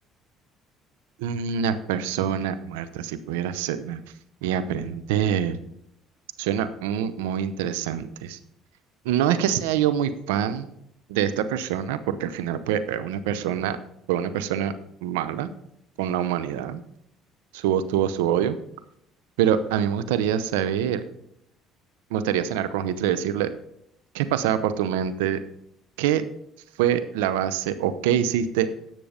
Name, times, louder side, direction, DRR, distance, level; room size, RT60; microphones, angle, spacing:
voice 1, 1.2-4.0 4.4-5.6 6.4-8.4 9.0-10.7 11.1-13.8 14.1-14.7 15.0-15.5 16.0-16.8 17.5-18.6 19.4-21.0 22.1-23.5 24.1-25.4 26.0-26.2 26.8-28.7, right 9 dB, 90° right, 12 dB, 0.7 m, -25 dB
10.5 x 6.9 x 5.1 m, 0.74 s
supercardioid pair, 75°, 0 cm